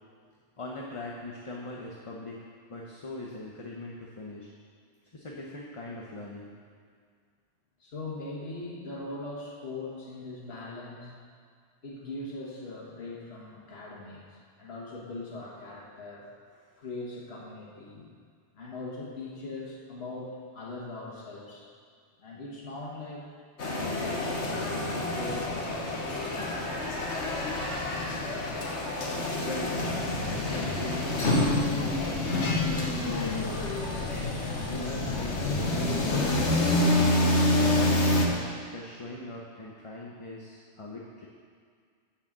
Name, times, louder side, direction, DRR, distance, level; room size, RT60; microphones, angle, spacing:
voice 1, 0.6-2.4 2.7-4.5 5.1-6.5 29.4-29.9 30.3-31.7 32.0-33.9 34.7-37.0 37.5-41.3, left 2 dB, 35° left, -3 dB, 0.8 m, -41 dB
voice 2, 7.8-11.1 11.8-18.1 18.5-21.7 22.2-23.3 23.7-26.6 28.7-28.9, left 2 dB, 65° left, -5 dB, 1.7 m, -41 dB
sound 1, 23.6-38.3, left 2 dB, 80° left, 1.4 m, -27 dB
6.5 x 6.3 x 7.3 m, 2.1 s
omnidirectional pair, 1.1 m